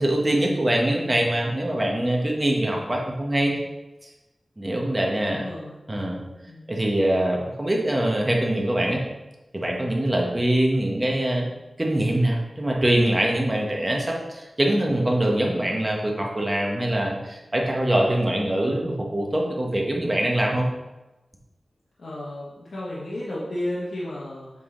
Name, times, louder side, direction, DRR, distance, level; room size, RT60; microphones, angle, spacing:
voice 1, 0.0-3.5 4.0-4.1 4.6-5.4 5.9-6.2 6.7-9.0 9.5-11.5 11.8-20.7, right 1 dB, 25° right, -1 dB, 1.1 m, -23 dB
voice 2, 5.3-5.8 6.5-6.7 22.0-24.5, left 1 dB, 75° left, -8 dB, 1.3 m, -33 dB
7.5 x 3.7 x 3.8 m, 1.1 s
wide cardioid pair, 95°, 0 cm